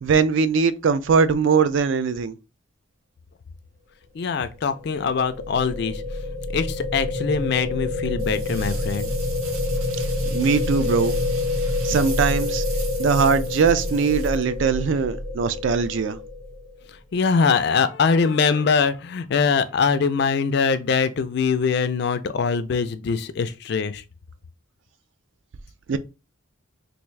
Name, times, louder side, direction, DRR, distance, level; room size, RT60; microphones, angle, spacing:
voice 1, 0.0-2.3 10.3-11.1 11.8-12.6 13.0-16.2 25.9-26.0, right 5 dB, 65° right, 0.3 m, -21 dB
voice 2, 4.1-9.1 17.1-24.0, left 5 dB, 50° left, 0.3 m, -23 dB
sound 1, 4.8-16.9, left 2 dB, 40° right, 0.8 m, -27 dB
sound 2, 8.2-14.9, right 5 dB, 90° right, 0.7 m, -40 dB
3.5 x 2.5 x 3.1 m
head